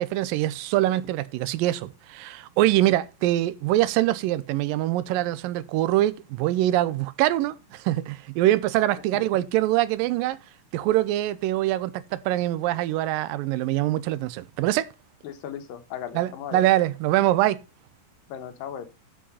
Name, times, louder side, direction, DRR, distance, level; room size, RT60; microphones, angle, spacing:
voice 1, 0.0-10.4 10.7-14.9 16.1-17.6, right 15 dB, 90° right, 2.4 m, -24 dB
voice 2, 15.2-16.6 18.3-18.8, left 9 dB, 90° left, 2.8 m, -36 dB
8.4 x 6.3 x 5.5 m
omnidirectional pair, 3.9 m